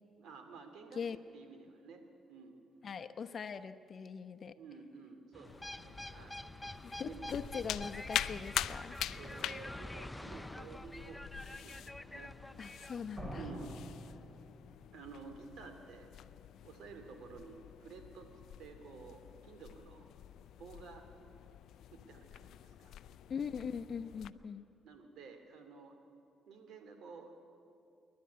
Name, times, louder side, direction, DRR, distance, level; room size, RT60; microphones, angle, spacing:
voice 1, 0.2-2.6 4.6-6.4 7.0-7.4 9.1-12.4 13.3-13.7 14.9-16.1 16.6-18.3 18.6-20.1 20.6-21.1 21.9-22.9 24.8-26.0 26.5-27.4, right 4 dB, 80° right, 7 dB, 2.8 m, -52 dB
voice 2, 2.8-4.5 6.8-9.0 12.6-13.4 23.3-24.6, left 6 dB, 50° left, 9 dB, 0.9 m, -41 dB
sound 1, 5.3-13.2, left 1 dB, 10° left, 0.6 m, -47 dB
sound 2, 5.4-24.3, left 11 dB, 80° left, 0.5 m, -45 dB
sound 3, 13.2-15.0, equal, 20° right, 5.4 m, -45 dB
27.0 x 11.5 x 9.5 m, 2.5 s
cardioid pair, 90°, 0 cm